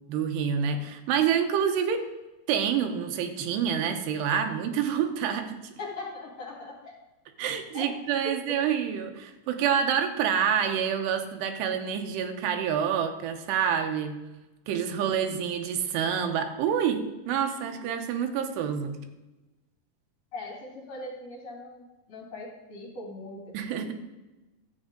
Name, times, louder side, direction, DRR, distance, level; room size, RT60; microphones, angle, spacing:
voice 1, 0.1-2.0 2.5-5.7 7.4-14.2 14.7-19.0 23.5-23.9, right 8 dB, 90° right, 6 dB, 3.0 m, -27 dB
voice 2, 5.8-7.0 7.7-7.9 20.3-23.9, left 2 dB, 50° left, -3 dB, 2.5 m, -40 dB
11.5 x 8.0 x 3.8 m, 1.1 s
omnidirectional pair, 4.6 m